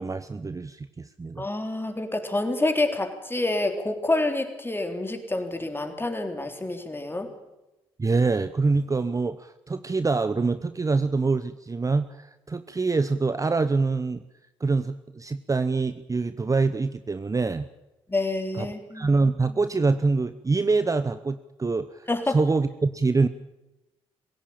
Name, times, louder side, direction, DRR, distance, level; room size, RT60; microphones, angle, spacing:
voice 1, 0.0-1.5 8.0-14.2 14.6-17.7 18.5-18.7 18.9-23.3, right 3 dB, 25° right, 12 dB, 0.9 m, -25 dB
voice 2, 1.4-7.3 18.1-19.2 22.1-22.4, left 2 dB, 15° left, 5 dB, 3.7 m, -27 dB
21.0 x 17.0 x 8.8 m, 1.0 s
hypercardioid pair, 45°, 13 cm